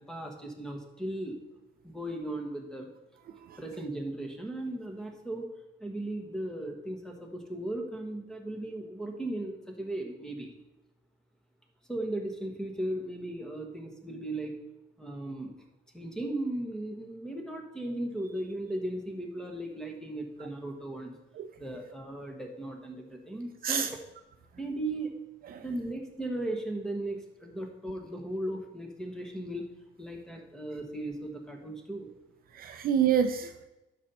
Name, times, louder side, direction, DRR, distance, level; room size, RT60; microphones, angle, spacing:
voice 1, 0.0-1.3 1.8-2.9 3.6-5.5 5.8-10.5 11.9-14.6 15.0-15.5 15.9-21.1 21.6-23.9 24.6-25.1 25.6-29.7 30.0-32.1, right 1 dB, 5° left, 2 dB, 1.2 m, -36 dB
voice 2, 3.3-3.6 21.3-21.5 23.6-23.9 25.5-25.6 32.5-33.6, right 8 dB, 45° right, 8 dB, 0.5 m, -28 dB
12.0 x 5.5 x 4.2 m, 0.99 s
cardioid pair, 155°, 21 cm